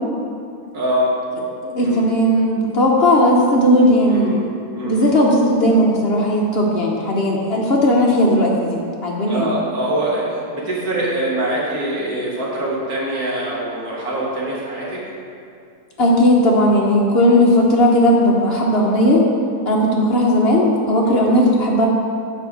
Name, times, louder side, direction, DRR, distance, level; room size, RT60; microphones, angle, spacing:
voice 1, 0.7-1.2 1.8-2.0 4.1-4.4 4.7-5.1 9.3-15.0 21.1-21.3, right 1 dB, 70° right, -6 dB, 2.1 m, -24 dB
voice 2, 1.6-4.4 4.8-9.5 16.0-19.3 19.6-21.9, equal, 50° left, -2 dB, 0.8 m, -16 dB
6.9 x 4.6 x 6.0 m, 2.5 s
omnidirectional pair, 1.7 m